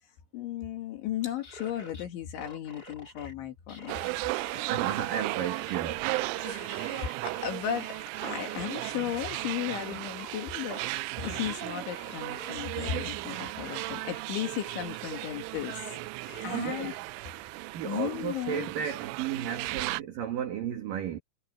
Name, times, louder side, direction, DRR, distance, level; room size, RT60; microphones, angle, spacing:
voice 1, 0.3-4.3 6.4-10.8 11.2-15.8 16.4-17.0 17.8-18.7, left 11 dB, 75° left, 4.6 m, -35 dB
sound 1, 1.2-2.0 2.4-3.3 3.7-5.8 6.0-8.8 9.2-14.2 14.6-16.9, left 1 dB, 20° left, 3.8 m, -48 dB
sound 2, 3.9-20.0, right 23 dB, 90° right, 3.0 m, -35 dB
voice 2, 4.7-6.1 16.5-16.9 17.7-21.2, right 9 dB, 55° right, 3.0 m, -33 dB
omnidirectional pair, 5.5 m